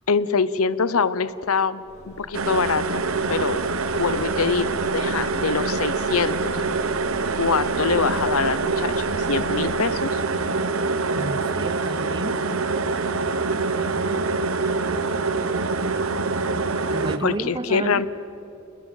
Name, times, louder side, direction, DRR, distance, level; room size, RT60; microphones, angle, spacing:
voice 1, 0.1-3.0 3.3-3.6 3.9-6.6 7.4-10.2 17.2-18.1, left 5 dB, 85° left, 16 dB, 0.8 m, -24 dB
sound 1, 1.9-9.7, left 1 dB, 35° left, 5.1 m, -43 dB
sound 2, 2.3-17.2, right 3 dB, 75° right, 1.2 m, -25 dB
voice 2, 11.2-12.4 16.9-18.1, right 2 dB, 25° right, 14 dB, 0.7 m, -31 dB
28.5 x 20.5 x 7.4 m, 2.9 s
head